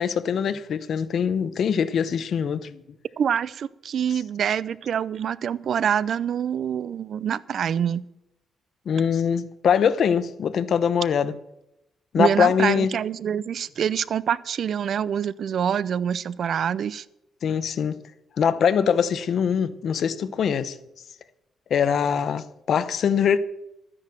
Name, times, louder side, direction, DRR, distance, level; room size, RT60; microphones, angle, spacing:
voice 1, 0.0-2.8 8.9-11.3 12.1-12.9 17.4-18.0 18.4-20.8 21.7-23.4, left 7 dB, 60° left, 0.8 m, -23 dB
voice 2, 3.2-8.0 12.2-17.0, right 8 dB, 60° right, 0.5 m, -25 dB
13.0 x 9.9 x 6.1 m
cardioid pair, 115°, 0 cm